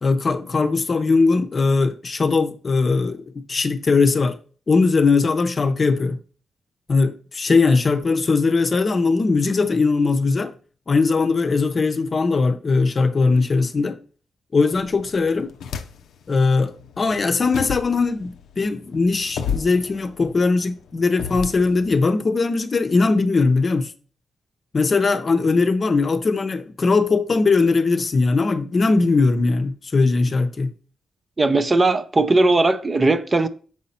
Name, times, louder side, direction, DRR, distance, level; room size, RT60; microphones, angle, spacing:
voice 1, 0.0-3.2 3.5-4.4 4.7-6.2 6.9-10.5 10.9-14.0 14.5-15.5 16.3-23.9 24.7-30.7, left 4 dB, 45° left, 0.7 m, -20 dB
sound 1, 14.7-16.3 16.7-22.0, left 7 dB, 85° left, 0.5 m, -33 dB
voice 2, 31.4-33.5, right 2 dB, 30° right, 0.6 m, -18 dB
6.2 x 4.0 x 4.2 m
cardioid pair, 70°, 0 cm